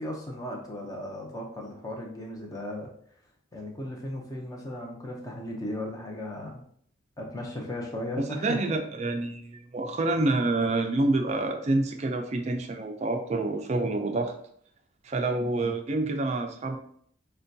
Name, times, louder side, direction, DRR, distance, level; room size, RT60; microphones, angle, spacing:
voice 1, 0.0-2.9 3.5-6.6 7.2-8.6 15.4-15.7, left 1 dB, 20° left, 0 dB, 0.5 m, -36 dB
voice 2, 8.2-14.3 15.0-16.8, right 2 dB, 35° right, 5 dB, 0.3 m, -27 dB
5.4 x 2.2 x 2.6 m, 0.64 s
head